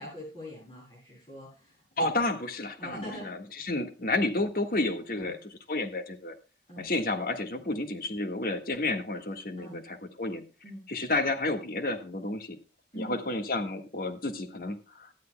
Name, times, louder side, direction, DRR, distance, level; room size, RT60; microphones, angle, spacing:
voice 1, 0.0-2.1 2.8-3.3 5.1-5.3 6.7-6.9 9.6-9.8 10.6-10.9 12.9-13.2, equal, 30° left, -6 dB, 7.8 m, -43 dB
voice 2, 2.0-6.3 6.8-10.4 10.9-12.6 13.0-15.1, left 2 dB, 50° left, 6 dB, 1.6 m, -31 dB
18.5 x 12.5 x 2.3 m, 0.32 s
head